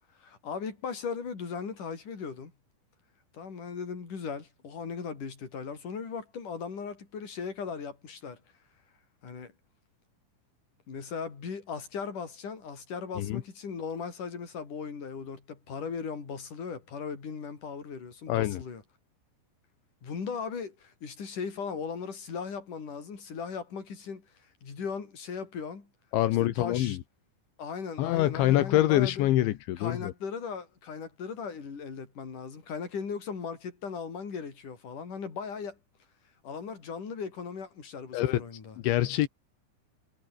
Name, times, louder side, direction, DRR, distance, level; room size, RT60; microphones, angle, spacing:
voice 1, 0.2-2.5 3.3-8.4 9.2-9.5 10.9-18.8 20.0-25.9 26.4-27.0 27.6-29.3 29.8-35.8 36.4-38.8, left 5 dB, 45° left, 6.1 m, -38 dB
voice 2, 18.3-18.6 26.1-27.0 28.0-30.1 38.1-38.4 38.8-39.3, left 14 dB, 80° left, 3.7 m, -25 dB
omnidirectional pair, 5.3 m